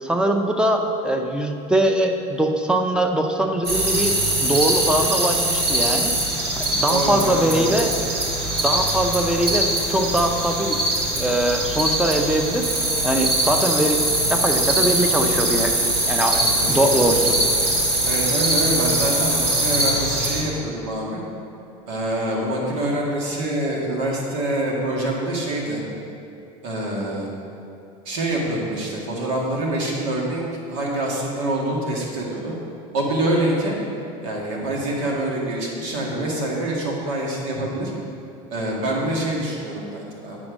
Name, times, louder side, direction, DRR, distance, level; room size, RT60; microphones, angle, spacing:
voice 1, 0.0-4.1 4.4-6.1 6.6-8.0 8.5-10.8 11.1-12.7 13.0-14.0 14.3-15.7 16.1-16.4 16.7-17.4, right 1 dB, 5° right, 4 dB, 0.6 m, -22 dB
sound 1, 3.6-20.4, right 1 dB, 40° right, 1.8 m, -22 dB
voice 2, 6.9-7.8 16.3-17.2 18.0-21.2 21.9-25.8 26.6-27.3 28.1-30.4 30.7-32.5 32.9-33.8 34.2-37.9 38.5-40.4, right 1 dB, 85° right, -2 dB, 1.9 m, -25 dB
8.6 x 4.4 x 6.2 m, 2.6 s
cardioid pair, 135°, 16 cm